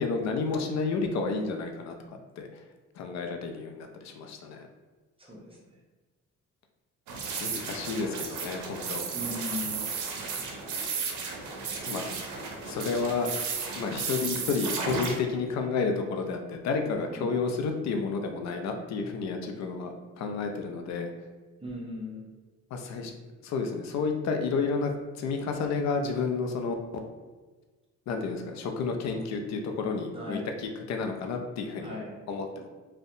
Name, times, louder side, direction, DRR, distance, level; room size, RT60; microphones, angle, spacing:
voice 1, 0.0-1.9 2.4-2.5 3.0-4.7 7.4-9.0 11.9-12.0 12.7-13.3 13.7-21.1 22.7-23.1 23.4-24.9 25.2-26.7 28.1-31.9 32.3-32.7, left 4 dB, 60° left, 4 dB, 0.5 m, -31 dB
voice 2, 5.2-5.6 9.1-9.8 17.1-17.3 21.6-22.3 30.1-30.5 31.8-32.1, left 2 dB, 20° right, -4 dB, 0.7 m, -38 dB
sound 1, 7.1-15.2, right 5 dB, 80° right, 0.6 m, -34 dB
2.6 x 2.1 x 2.5 m, 1.3 s
cardioid pair, 90°, 30 cm